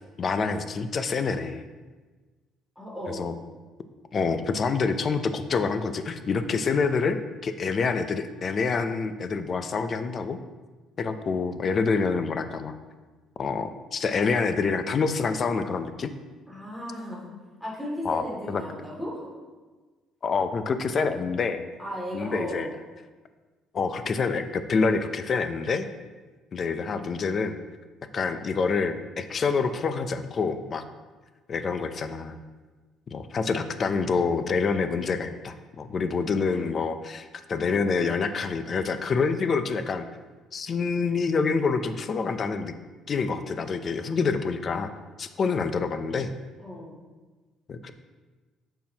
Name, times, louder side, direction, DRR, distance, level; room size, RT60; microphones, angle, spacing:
voice 1, 0.2-1.6 3.2-3.3 4.1-10.4 11.0-12.7 13.4-16.1 18.0-18.2 18.5-18.6 20.2-21.6 22.1-22.7 23.7-25.9 26.5-27.6 28.1-30.8 31.5-32.3 33.1-40.1 40.5-42.7 43.1-44.9 45.2-46.3 47.7-47.9, left 4 dB, 40° left, 10 dB, 0.5 m, -27 dB
voice 2, 2.8-3.3 16.5-17.3 17.6-19.3 21.8-22.7 36.5-36.6 46.6-47.0, equal, 5° left, -5 dB, 2.3 m, -36 dB
8.5 x 5.7 x 2.9 m, 1.3 s
cardioid pair, 110°, 0 cm